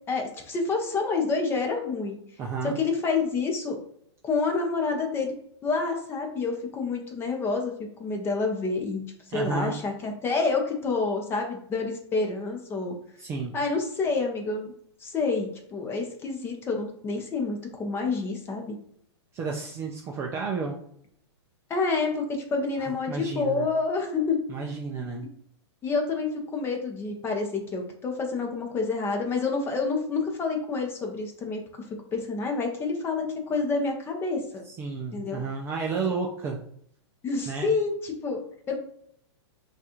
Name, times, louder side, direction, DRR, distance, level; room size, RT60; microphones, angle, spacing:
voice 1, 0.1-2.2 2.8-3.8 4.2-5.3 5.6-9.0 9.3-13.0 13.5-14.7 15.0-18.8 21.7-24.4 25.8-31.6 32.1-34.6 35.1-35.4 37.2-38.8, left 4 dB, 15° left, 2 dB, 0.7 m, -28 dB
voice 2, 2.4-2.8 9.3-9.7 13.2-13.6 19.3-20.8 22.8-23.7 24.5-25.3 34.7-36.6 37.5-37.7, right 4 dB, 15° right, 0 dB, 0.4 m, -31 dB
5.8 x 2.4 x 3.0 m, 0.67 s
hypercardioid pair, 150°, 15 cm